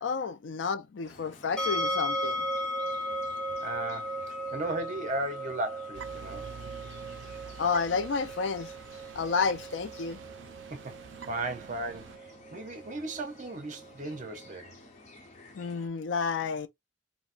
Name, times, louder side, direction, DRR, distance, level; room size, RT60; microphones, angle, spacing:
voice 1, 0.0-2.4 7.6-8.7 9.1-10.2 15.5-16.7, left 5 dB, 80° left, 0.4 m, -30 dB
sound 1, 1.0-15.9, left 2 dB, 40° left, 0.9 m, -53 dB
sound 2, 1.6-14.5, equal, 5° left, 0.7 m, -37 dB
voice 2, 3.6-6.4 10.7-11.0 11.2-14.7, right 2 dB, 45° right, 0.7 m, -36 dB
sound 3, 5.9-12.2, right 7 dB, 80° right, 0.3 m, -47 dB
4.1 x 2.1 x 2.5 m
head